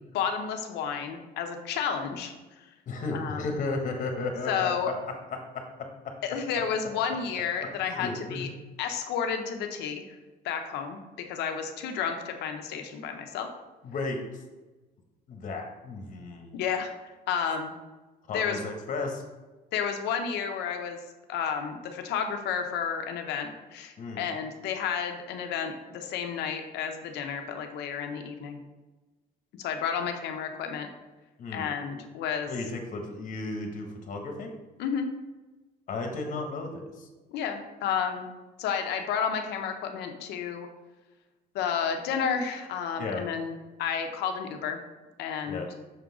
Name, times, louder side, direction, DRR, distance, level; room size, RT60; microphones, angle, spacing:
voice 1, 0.1-2.7 3.1-3.4 4.5-4.9 6.2-8.5 8.8-10.2 10.4-11.0 11.3-13.5 16.5-16.9 17.3-17.7 18.3-18.6 19.7-21.0 21.3-28.6 29.6-30.9 31.5-32.5 34.8-35.1 37.3-38.3 38.6-40.7 41.5-44.8 45.2-45.6, left 7 dB, 80° left, 5 dB, 0.8 m, -31 dB
voice 2, 2.9-4.9 5.5-6.1 7.8-8.4 13.8-14.4 15.3-16.5 18.3-19.2 24.0-24.3 31.4-31.6 32.5-34.5 35.9-37.1 43.0-43.2 45.5-45.7, left 3 dB, 50° left, 3 dB, 1.3 m, -34 dB
6.4 x 3.8 x 4.8 m, 1.2 s
cardioid pair, 110°, 17 cm